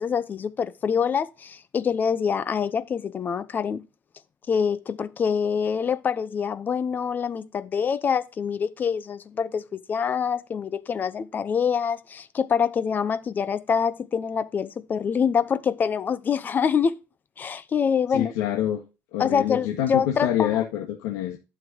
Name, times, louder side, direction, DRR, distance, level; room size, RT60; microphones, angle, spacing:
voice 1, 0.0-3.8 4.5-16.9 17.4-18.3 19.2-20.6, left 6 dB, 25° left, 0.8 m, -25 dB
voice 2, 18.1-18.8 19.1-21.4, left 11 dB, 90° left, 1.9 m, -26 dB
11.5 x 8.0 x 2.9 m
cardioid pair, 165°, 8 cm